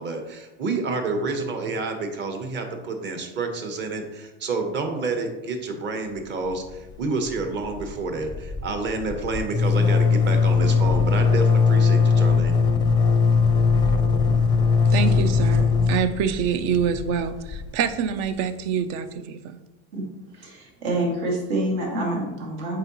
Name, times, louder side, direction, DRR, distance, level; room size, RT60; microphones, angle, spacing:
voice 1, 0.0-12.5, right 3 dB, 35° right, 5 dB, 1.0 m, -29 dB
sound 1, 6.4-7.0 7.3-7.4 7.6-18.3, left 5 dB, 15° left, 0.5 m, -20 dB
voice 2, 14.9-19.6, right 7 dB, 55° right, 11 dB, 0.6 m, -26 dB
voice 3, 19.9-22.8, right 1 dB, 75° right, -2 dB, 2.1 m, -27 dB
7.6 x 4.7 x 3.0 m, 1.0 s
supercardioid pair, 125°, 31 cm